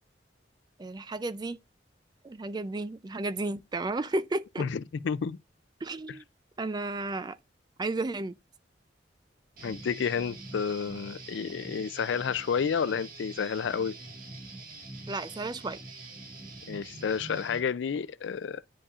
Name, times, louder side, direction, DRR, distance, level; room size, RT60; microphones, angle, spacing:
voice 1, 0.8-1.6 2.2-4.6 5.8-6.2 6.6-7.4 7.8-8.3 15.1-15.8, right 2 dB, 25° right, 0.4 m, -33 dB
voice 2, 4.6-5.4 9.6-14.0 16.7-18.6, left 6 dB, 80° left, 0.4 m, -30 dB
Guitar, 9.6-17.6, right 2 dB, 50° right, 1.7 m, -45 dB
9.8 x 5.0 x 2.4 m
head